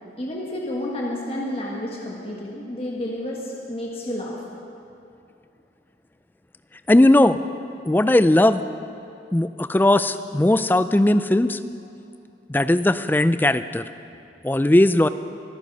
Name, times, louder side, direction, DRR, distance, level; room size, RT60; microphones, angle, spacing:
voice 1, 0.2-4.4, left 1 dB, 35° left, -2 dB, 1.5 m, -30 dB
voice 2, 6.9-7.4 7.8-8.7 9.3-11.6 12.5-13.8 14.4-15.1, left 1 dB, 10° left, 13 dB, 0.3 m, -18 dB
23.5 x 9.3 x 5.4 m, 2.6 s
head